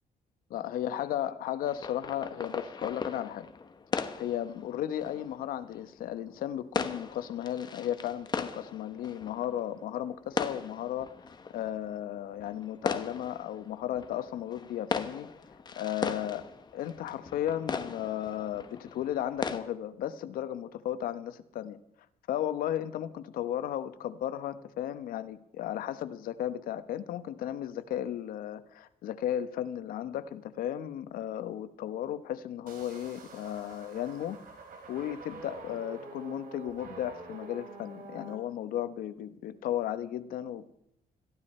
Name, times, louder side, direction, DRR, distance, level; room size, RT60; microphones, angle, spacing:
voice 1, 0.5-3.5 4.2-11.1 11.5-15.3 15.8-16.4 16.7-21.8 22.3-34.4 34.9-40.8, left 11 dB, 80° left, 13 dB, 1.1 m, -35 dB
sound 1, 1.7-19.6, left 5 dB, 30° left, 1.2 m, -39 dB
sound 2, 32.7-38.4, right 4 dB, 70° right, 3.5 m, -47 dB
21.5 x 15.0 x 4.4 m, 0.79 s
cardioid pair, 120°, 15 cm